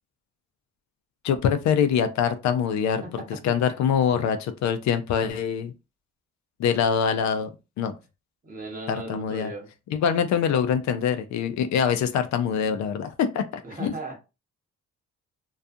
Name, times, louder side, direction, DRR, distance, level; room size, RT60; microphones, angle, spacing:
voice 1, 1.2-3.0 3.4-5.7 6.6-7.5 7.8-7.9 8.9-9.5 9.9-13.9, left 7 dB, 65° left, 0.4 m, -24 dB
voice 2, 8.4-9.7 13.6-14.2, right 2 dB, 30° right, 1.2 m, -37 dB
2.3 x 2.3 x 2.6 m
cardioid pair, 90°, 30 cm